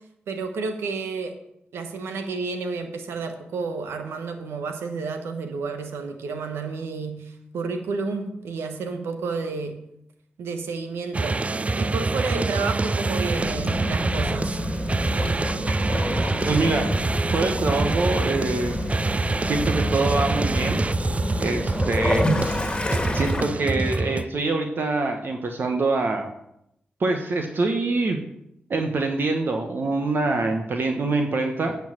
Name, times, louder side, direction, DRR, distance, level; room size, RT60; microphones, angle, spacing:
voice 1, 0.3-1.3 1.7-9.8 10.4-11.4 11.8-14.6, right 4 dB, 85° right, 6 dB, 1.1 m, -31 dB
sound 1, 11.1-24.3, right 3 dB, 30° right, 0.4 m, -26 dB
Waves surf / Splash splatter / Trickle dribble, 13.2-23.4, left 1 dB, 25° left, 1.8 m, -28 dB
voice 2, 16.5-16.9 17.3-18.8 19.5-20.8 21.4-22.3 23.1-26.3 27.0-28.2 28.7-31.7, right 3 dB, 60° right, 4 dB, 1.1 m, -24 dB
9.1 x 4.7 x 7.5 m, 0.80 s
supercardioid pair, 45°, 4 cm